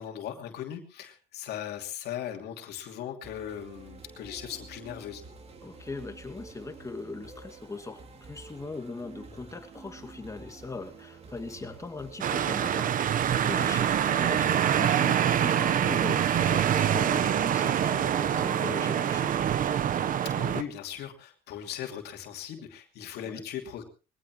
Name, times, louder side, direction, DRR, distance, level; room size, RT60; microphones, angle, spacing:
voice 1, 0.0-5.2 20.2-23.8, left 10 dB, 75° left, 3 dB, 2.8 m, -38 dB
sound 1, 3.2-19.2, right 4 dB, 35° right, 2.9 m, -48 dB
voice 2, 5.6-19.5 23.2-23.4, left 3 dB, 20° left, 6 dB, 2.2 m, -40 dB
sound 2, 12.2-20.6, right 9 dB, 55° right, 1.0 m, -25 dB
21.5 x 16.5 x 3.1 m, 0.32 s
cardioid pair, 110°, 17 cm